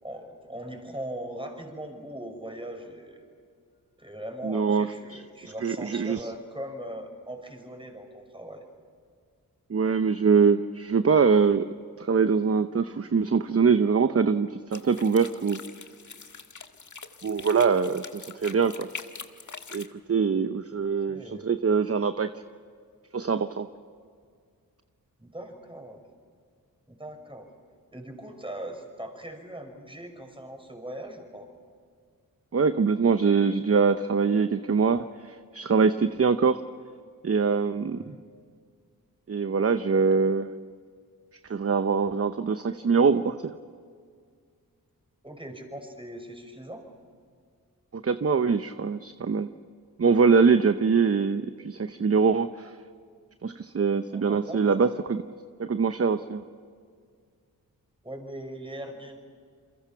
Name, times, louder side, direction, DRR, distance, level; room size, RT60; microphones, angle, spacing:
voice 1, 0.0-3.2 4.0-8.6 21.0-21.5 25.2-26.0 26.9-27.5 27.9-31.5 37.9-38.3 45.2-46.8 54.1-54.9 58.0-59.2, right 1 dB, 15° right, 4 dB, 5.9 m, -40 dB
voice 2, 4.4-6.3 9.7-11.7 12.0-15.6 17.2-18.9 19.7-22.3 23.1-23.7 32.5-36.6 37.2-38.2 39.3-40.5 41.5-43.5 47.9-49.5 50.0-52.7 53.4-55.2 55.6-56.4, right 5 dB, 40° right, 10 dB, 0.8 m, -23 dB
sound 1, 14.7-19.9, left 5 dB, 55° left, 1.5 m, -43 dB
29.0 x 23.0 x 5.8 m, 2.1 s
cardioid pair, 50°, 37 cm